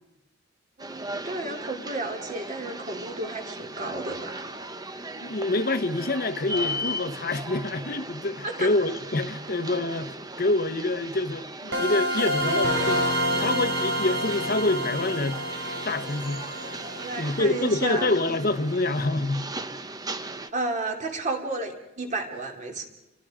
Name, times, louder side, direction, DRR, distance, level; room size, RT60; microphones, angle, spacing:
sound 1, 0.8-20.5, right 1 dB, 20° right, 0.9 m, -37 dB
voice 1, 0.8-4.4 8.4-8.7 12.5-12.8 17.0-18.1 20.5-22.9, right 2 dB, 40° right, 2.8 m, -32 dB
voice 2, 5.2-13.0 13.4-15.4 15.8-16.4 16.8-16.9 17.2-19.5, left 2 dB, 50° left, 1.1 m, -26 dB
sound 2, 11.7-18.4, equal, 70° right, 4.0 m, -28 dB
29.5 x 24.0 x 5.0 m
head